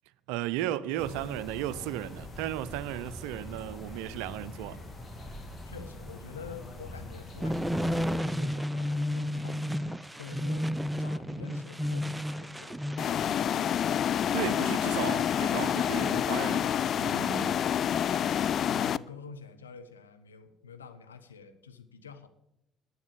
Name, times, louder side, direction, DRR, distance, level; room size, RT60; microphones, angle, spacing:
voice 1, 0.3-4.8 14.3-16.7 16.9-17.6, right 13 dB, 70° right, 0.5 m, -35 dB
sound 1, 1.0-8.2, left 1 dB, 40° left, 2.5 m, -44 dB
voice 2, 5.6-13.9 18.1-22.3, left 5 dB, 90° left, 0.7 m, -48 dB
sound 2, 7.4-13.1, equal, 5° right, 0.5 m, -31 dB
sound 3, 13.0-19.0, left 9 dB, 55° left, 0.3 m, -28 dB
11.0 x 8.6 x 6.6 m
figure-of-eight pair, 50°, 0 cm